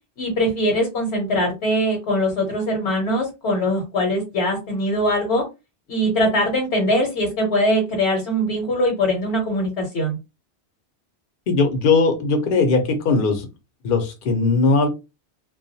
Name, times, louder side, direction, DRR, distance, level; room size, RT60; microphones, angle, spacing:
voice 1, 0.2-5.4 5.9-10.2, equal, 75° left, 1 dB, 1.1 m, -22 dB
voice 2, 11.5-13.5 13.8-14.9, left 4 dB, 55° left, 6 dB, 0.8 m, -19 dB
2.3 x 2.2 x 2.6 m, 0.25 s
omnidirectional pair, 1.1 m